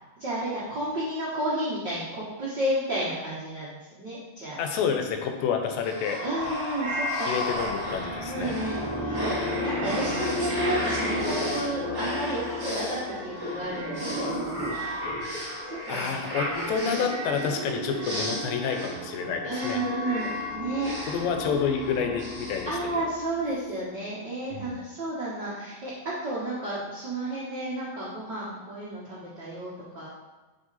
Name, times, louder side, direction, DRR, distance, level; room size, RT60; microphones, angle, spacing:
voice 1, 0.2-4.6 6.2-7.3 8.3-9.2 9.6-14.5 15.7-16.1 16.5-16.8 19.4-21.1 21.4-21.5 22.6-30.1, right 1 dB, 80° right, -9 dB, 0.9 m, -32 dB
voice 2, 4.6-6.2 7.3-8.5 15.9-19.8 21.0-22.8 24.5-24.8, left 6 dB, 80° left, 4 dB, 2.4 m, -29 dB
sound 1, 5.8-23.5, left 1 dB, 15° right, 0.8 m, -32 dB
6.2 x 4.2 x 4.1 m, 1.2 s
omnidirectional pair, 4.1 m